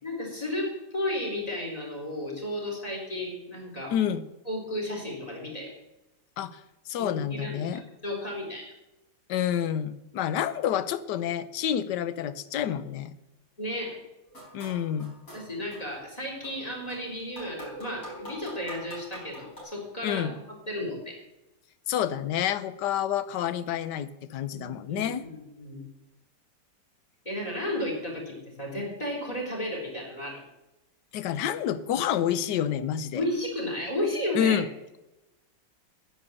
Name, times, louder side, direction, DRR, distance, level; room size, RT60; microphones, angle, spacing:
voice 1, 0.0-4.0 4.5-5.7 7.0-8.7 13.6-14.0 15.3-21.2 24.5-25.8 27.3-30.4 33.1-34.6, left 1 dB, 20° left, 0 dB, 4.0 m, -33 dB
voice 2, 3.9-4.2 6.4-6.6 6.9-7.8 9.3-13.1 14.5-15.1 20.0-20.3 21.9-25.2 31.1-33.2 34.3-34.7, left 10 dB, 75° left, 14 dB, 1.3 m, -28 dB
sound 1, 14.3-16.0 16.4-19.6, right 1 dB, 50° left, 5.2 m, -45 dB
10.5 x 9.8 x 7.0 m, 0.98 s
omnidirectional pair, 2.0 m